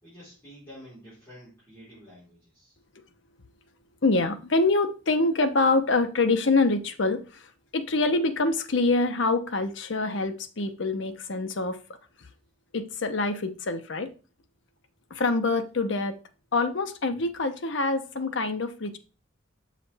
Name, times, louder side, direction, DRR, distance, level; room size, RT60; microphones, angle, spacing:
voice 1, 0.0-2.8, equal, 15° left, 4.0 m, -49 dB
voice 2, 4.0-11.8 12.7-14.1 15.1-16.2 16.5-19.0, left 3 dB, 70° left, 0.8 m, -25 dB
6.9 x 5.0 x 3.4 m
head